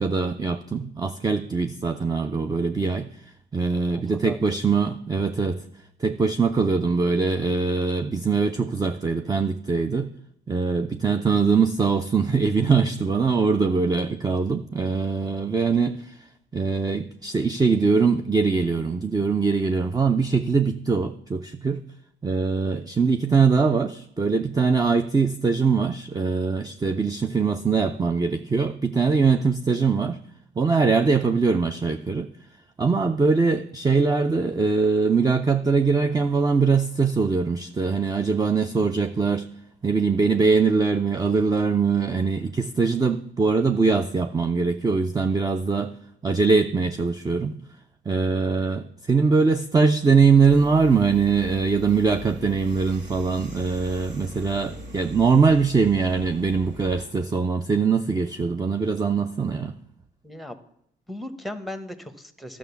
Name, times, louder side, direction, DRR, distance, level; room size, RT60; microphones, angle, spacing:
voice 1, 0.0-3.1 3.5-5.6 6.0-10.1 10.5-16.2 16.5-21.8 22.2-30.2 30.6-32.3 32.8-39.5 39.8-45.9 46.2-47.6 48.1-59.7, right 4 dB, 20° right, 8 dB, 0.5 m, -22 dB
voice 2, 3.9-4.6 60.2-60.6 61.1-62.6, left 1 dB, ahead, 10 dB, 1.1 m, -37 dB
sound 1, 50.4-57.0, equal, 65° right, 2.4 m, -40 dB
11.5 x 6.1 x 7.0 m, 0.73 s
cardioid pair, 90°, 20 cm